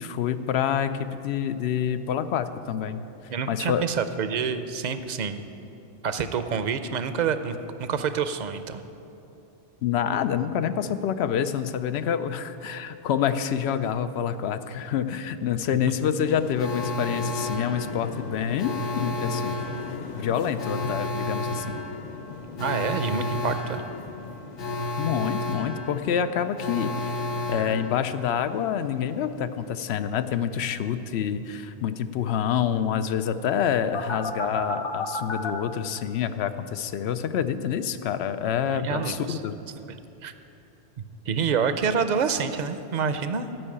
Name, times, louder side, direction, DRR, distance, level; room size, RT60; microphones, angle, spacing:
voice 1, 0.0-3.0 3.5-3.9 9.8-19.6 20.1-21.8 25.0-26.9 27.5-39.5, left 8 dB, 85° left, 11 dB, 0.8 m, -27 dB
voice 2, 3.3-5.4 6.0-8.8 22.6-23.8 38.7-39.4 39.8-39.9 40.2-40.3 41.0-43.5, right 6 dB, 50° right, 10 dB, 0.6 m, -27 dB
sound 1, 16.2-32.7 33.0-33.4, left 4 dB, 50° left, 0.7 m, -41 dB
Alarm, 16.6-28.5 33.9-35.5, left 2 dB, 65° left, 1.1 m, -32 dB
12.0 x 5.5 x 8.7 m, 2.8 s
omnidirectional pair, 1.1 m